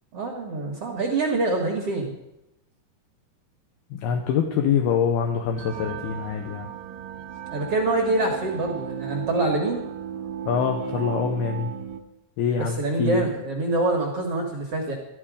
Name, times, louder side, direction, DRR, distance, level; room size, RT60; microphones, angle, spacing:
voice 1, 0.1-2.1 7.5-9.8 12.6-14.9, right 2 dB, 60° right, 0 dB, 1.6 m, -25 dB
voice 2, 3.9-6.7 10.5-11.7 12.4-13.2, left 7 dB, 75° left, 3 dB, 2.5 m, -25 dB
sound 1, 5.6-12.0, right 8 dB, 90° right, 1.9 m, -35 dB
13.5 x 13.0 x 5.0 m, 0.86 s
omnidirectional pair, 5.5 m